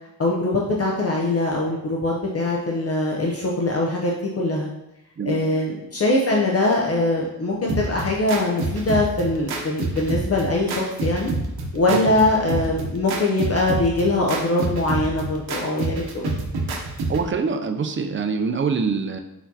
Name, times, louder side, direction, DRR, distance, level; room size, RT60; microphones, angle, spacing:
voice 1, 0.2-4.7 5.3-11.3 11.7-16.3, left 2 dB, 40° left, -2 dB, 0.6 m, -22 dB
sound 1, 7.7-17.3, right 2 dB, 80° right, 0.8 m, -28 dB
voice 2, 17.1-19.2, right 5 dB, 35° right, 6 dB, 0.4 m, -24 dB
4.4 x 4.3 x 2.7 m, 0.87 s
wide cardioid pair, 120°, 37 cm